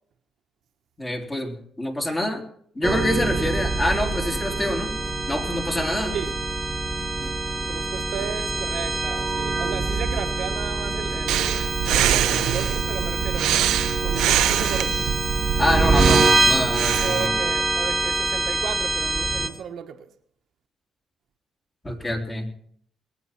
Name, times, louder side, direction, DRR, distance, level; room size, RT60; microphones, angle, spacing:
voice 1, 1.0-2.5 2.8-5.0 5.3-6.2 11.9-12.4 15.6-17.3 21.8-22.5, left 1 dB, 20° left, 3.5 m, -26 dB
sound 1, 2.8-19.5, right 3 dB, 30° right, 1.5 m, -25 dB
sound 2, 3.4-11.2, left 1 dB, 35° left, 3.4 m, -45 dB
voice 2, 7.7-11.7 12.3-15.0 16.9-20.1, right 8 dB, 70° right, 1.2 m, -34 dB
Breathing, 11.3-17.3, right 12 dB, 90° right, 0.7 m, -25 dB
21.0 x 9.1 x 5.9 m
cardioid pair, 90°, 0 cm